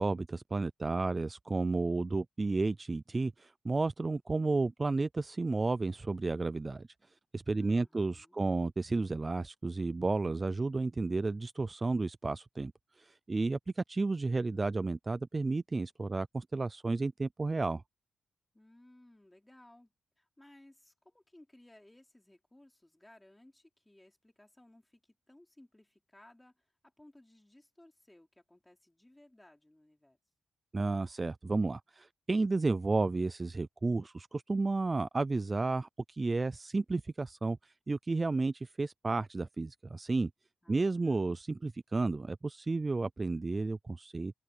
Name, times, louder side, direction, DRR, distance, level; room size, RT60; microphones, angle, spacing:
voice 1, 0.0-6.9 7.3-12.7 13.0-17.8 30.7-40.3 40.7-44.3, right 3 dB, 25° right, 0.4 m, -32 dB
voice 2, 7.5-8.5 18.5-30.2 40.6-41.3, left 1 dB, 10° left, 4.6 m, -61 dB
open air
cardioid pair, 110°, 0 cm